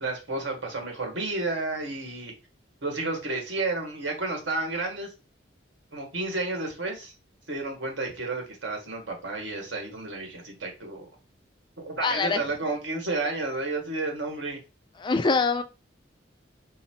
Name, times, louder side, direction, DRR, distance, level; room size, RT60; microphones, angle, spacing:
voice 1, 0.0-2.3 2.8-5.1 5.9-7.1 7.5-11.1 11.8-14.6, right 2 dB, 85° right, 1.4 m, -31 dB
voice 2, 12.0-12.4 15.0-15.6, left 4 dB, 25° left, 0.3 m, -24 dB
4.0 x 2.1 x 4.2 m
head